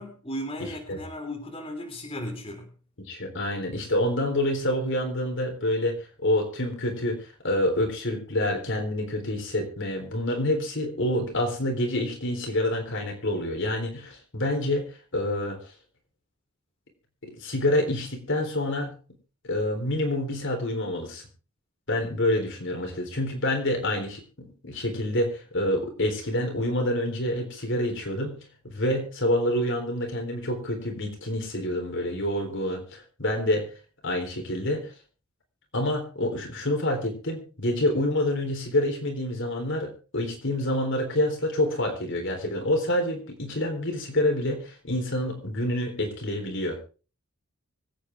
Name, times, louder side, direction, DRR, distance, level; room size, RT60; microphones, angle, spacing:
voice 1, 0.0-2.7, equal, 25° left, 1 dB, 3.5 m, -36 dB
voice 2, 3.1-14.9 15.1-15.6 17.3-19.0 19.4-21.2 21.9-28.4 28.6-33.7 34.0-34.9 35.7-46.8, left 1 dB, 60° left, 3 dB, 3.8 m, -27 dB
24.5 x 8.7 x 3.5 m, 0.35 s
head